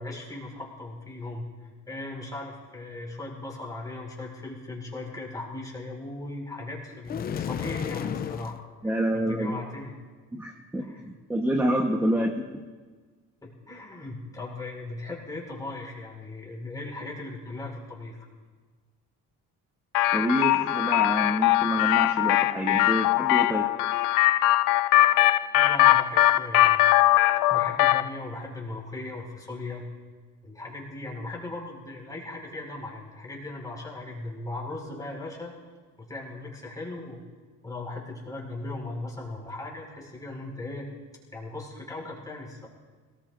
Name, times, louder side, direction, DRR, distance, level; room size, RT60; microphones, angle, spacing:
voice 1, 0.0-1.4 1.9-8.6 8.8-9.9 10.8-11.1 13.4-18.3 25.5-26.8 27.5-29.9 30.4-35.5 36.0-37.2 37.6-40.9 41.3-42.7, left 2 dB, 10° left, -2 dB, 5.0 m, -38 dB
sound 1, 7.1-8.6, left 8 dB, 30° left, 0.5 m, -32 dB
voice 2, 8.8-9.6 10.3-12.4 20.1-23.7, equal, 5° right, 1 dB, 1.1 m, -27 dB
sound 2, 19.9-28.1, left 15 dB, 80° left, 0.6 m, -21 dB
28.0 x 19.5 x 2.6 m, 1.4 s
cardioid pair, 160°, 32 cm